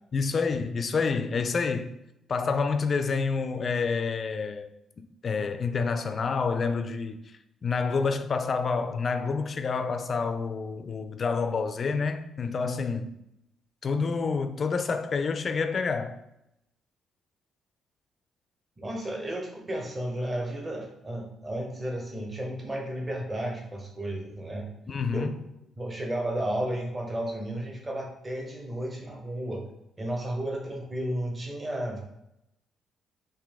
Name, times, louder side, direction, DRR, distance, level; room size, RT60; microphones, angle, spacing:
voice 1, 0.1-1.9 2.3-4.7 5.0-7.2 7.6-13.1 13.8-16.2 24.9-25.4, left 4 dB, 45° left, 0.3 m, -28 dB
voice 2, 18.8-24.7 25.1-25.3 25.8-29.6 30.0-32.0, right 1 dB, 25° right, 0.9 m, -33 dB
3.8 x 2.6 x 3.5 m
cardioid pair, 90°, 0 cm